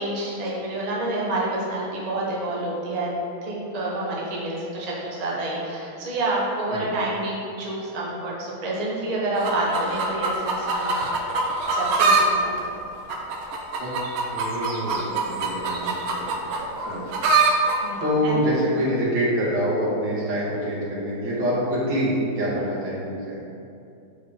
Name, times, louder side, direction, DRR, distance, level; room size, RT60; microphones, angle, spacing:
voice 1, 0.0-3.1 3.4-11.1 11.7-12.6 17.8-18.5, right 2 dB, 40° right, -5 dB, 0.5 m, -28 dB
sound 1, 9.3-12.3 12.6-17.8 18.6-18.7, right 3 dB, 80° right, 1.5 m, -24 dB
voice 2, 14.3-16.5 16.9-17.0 18.0-23.4, equal, 60° right, -7 dB, 2.2 m, -26 dB
6.7 x 4.7 x 3.6 m, 2.6 s
omnidirectional pair, 2.3 m